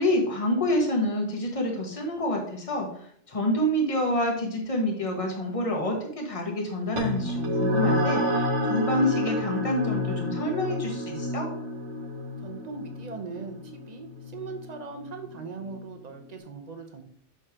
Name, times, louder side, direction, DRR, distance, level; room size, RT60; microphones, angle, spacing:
voice 1, 0.0-2.9 3.3-11.5, left 1 dB, 30° left, 1 dB, 1.4 m, -27 dB
sound 1, 7.0-15.8, left 1 dB, 80° right, 1.4 m, -29 dB
voice 2, 12.4-17.0, right 4 dB, 40° right, 5 dB, 0.9 m, -40 dB
6.3 x 5.5 x 3.6 m, 0.64 s
omnidirectional pair, 1.2 m